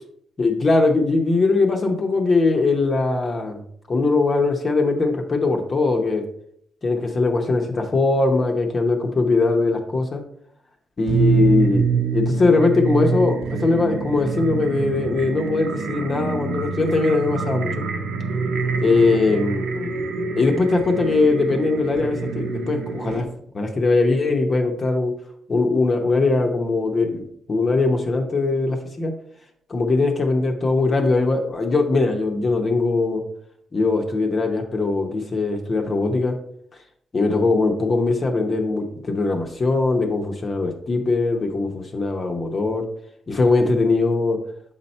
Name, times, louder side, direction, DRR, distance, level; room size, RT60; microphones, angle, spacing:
voice 1, 0.4-3.6 3.9-6.2 6.8-10.2 11.0-11.8 12.1-17.8 18.8-19.9 20.3-23.3 23.5-25.1 25.5-29.1 29.7-33.2 33.7-36.4 37.1-42.8 43.3-44.4, left 3 dB, 30° left, 3 dB, 0.7 m, -21 dB
sound 1, 11.1-23.2, right 4 dB, 65° right, 0.9 m, -25 dB
7.4 x 4.2 x 4.3 m, 0.67 s
cardioid pair, 160°, 0 cm